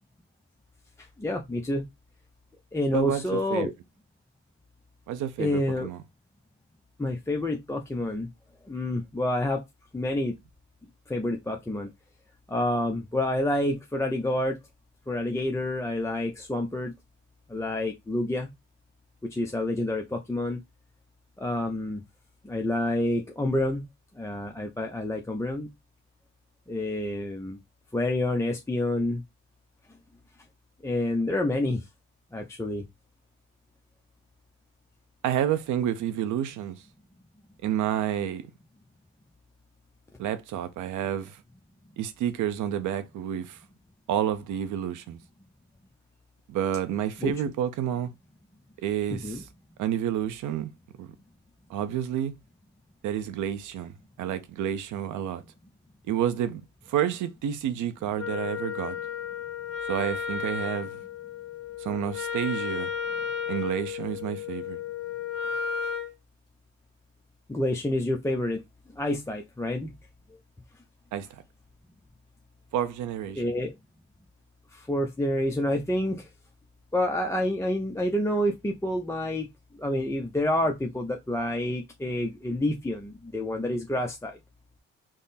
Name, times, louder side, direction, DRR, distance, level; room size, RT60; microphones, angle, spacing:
voice 1, 1.0-1.9 2.7-3.7 5.4-5.9 7.0-8.3 8.6-9.6 9.9-10.4 11.1-11.9 12.5-14.6 15.1-16.9 17.5-18.5 19.2-20.6 21.4-22.0 22.4-23.8 24.1-25.7 26.7-27.6 27.9-29.2 30.8-31.8 32.3-32.9 47.2-47.3 49.2-49.4 67.5-68.6 68.9-69.9 73.4-73.7 74.7-76.3 76.9-79.5 79.8-84.4, left 1 dB, 10° left, 0.5 m, -28 dB
voice 2, 2.9-3.7 5.1-6.0 35.2-36.8 37.6-38.5 40.2-41.4 42.0-43.6 44.1-45.2 46.5-48.1 48.8-49.4 49.8-50.7 51.0-51.1 51.7-52.3 53.0-55.4 56.1-56.6 56.9-59.0 59.9-61.0 61.8-62.9 63.5-64.8 71.1-71.3 72.7-73.4, right 10 dB, 75° right, 0.6 m, -29 dB
Wind instrument woodwind instrument, 58.2-66.1, left 7 dB, 50° left, 0.9 m, -33 dB
3.6 x 2.1 x 4.0 m
cardioid pair, 90°, 30 cm